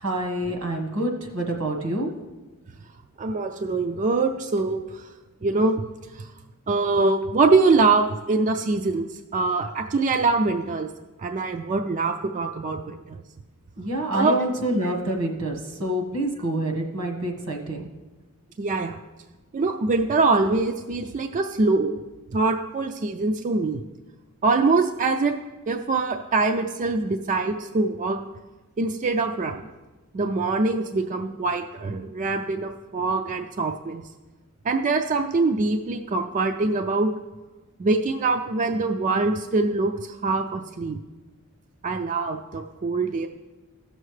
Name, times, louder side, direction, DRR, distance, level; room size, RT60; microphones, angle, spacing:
voice 1, 0.0-2.1 13.8-17.9, right 1 dB, 80° right, 2 dB, 1.5 m, -27 dB
voice 2, 3.2-5.0 5.4-5.8 6.1-6.2 6.7-9.1 9.3-10.9 11.2-13.2 14.1-14.3 18.6-19.0 19.5-22.0 22.3-23.8 24.4-25.3 25.7-28.2 28.8-29.7 30.1-34.0 34.6-37.1 37.8-41.0 41.8-43.3, right 3 dB, 35° right, 5 dB, 0.4 m, -23 dB
15.5 x 6.6 x 3.2 m, 1.2 s
head